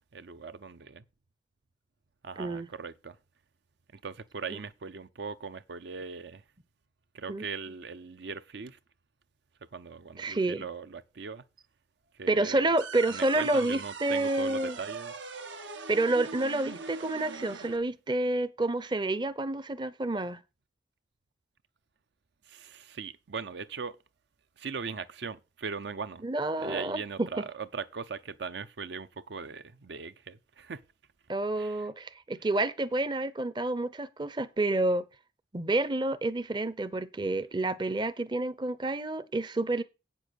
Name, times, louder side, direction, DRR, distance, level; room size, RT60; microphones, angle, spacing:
voice 1, 0.1-1.0 2.2-3.2 3.9-6.4 7.1-8.8 9.6-11.5 12.1-12.7 13.1-15.1 22.4-24.0 24.6-26.3 26.6-30.8 31.6-31.9, right 5 dB, 70° right, 0.6 m, -40 dB
voice 2, 10.2-10.7 12.3-14.8 15.9-20.4 26.2-27.3 31.3-35.1 35.5-39.8, right 2 dB, 25° right, 0.6 m, -29 dB
sound 1, 12.8-17.8, right 4 dB, 90° right, 1.5 m, -41 dB
8.4 x 7.0 x 6.2 m
head